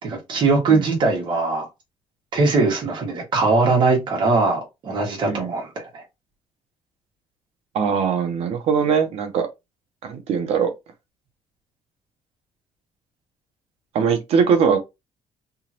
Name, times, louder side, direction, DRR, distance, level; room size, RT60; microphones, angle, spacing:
voice 1, 0.0-1.7 2.3-6.0, right 3 dB, 45° right, 1.7 m, -21 dB
voice 2, 7.7-9.5 10.0-10.7 13.9-14.8, right 6 dB, 65° right, 0.9 m, -21 dB
3.6 x 3.0 x 2.9 m
cardioid pair, 170°, 11 cm